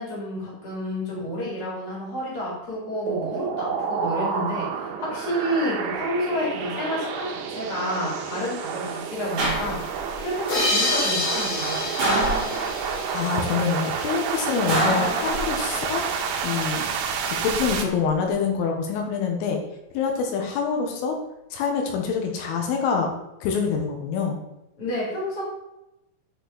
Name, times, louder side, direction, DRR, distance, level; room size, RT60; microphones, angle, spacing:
voice 1, 0.0-9.8 10.2-11.8 24.8-25.4, equal, 25° left, -5 dB, 2.9 m, -30 dB
sound 1, 3.1-17.8, right 6 dB, 80° right, 2.3 m, -29 dB
sound 2, 9.4-10.2 12.0-12.9 14.7-15.8 17.2-17.8, right 1 dB, 35° right, 3.4 m, -26 dB
sound 3, 10.5-13.8, left 2 dB, 65° left, 5.8 m, -27 dB
voice 2, 13.1-16.1 16.4-16.8 17.3-19.6 20.0-21.1 21.5-23.1 23.4-24.4, left 5 dB, 85° left, 2 dB, 3.8 m, -25 dB
9.8 x 5.3 x 4.1 m, 0.90 s
omnidirectional pair, 5.6 m